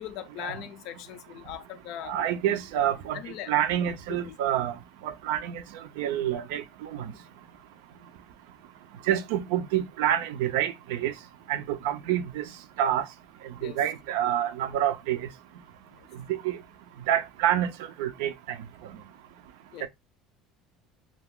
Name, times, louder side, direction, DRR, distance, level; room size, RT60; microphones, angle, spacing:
voice 1, 0.0-2.2 3.1-3.5 3.8-4.5 13.6-13.8 16.0-16.1 19.7-19.9, left 11 dB, 65° left, 0.4 m, -40 dB
voice 2, 2.1-3.2 3.5-4.7 5.0-5.6 6.0-7.1 9.1-11.1 11.5-12.4 12.8-13.1 13.6-15.2 16.3-16.6 17.1-17.7 18.0-18.3 19.8-19.9, right 11 dB, 90° right, 0.4 m, -27 dB
2.3 x 2.3 x 3.5 m
cardioid pair, 130°, 0 cm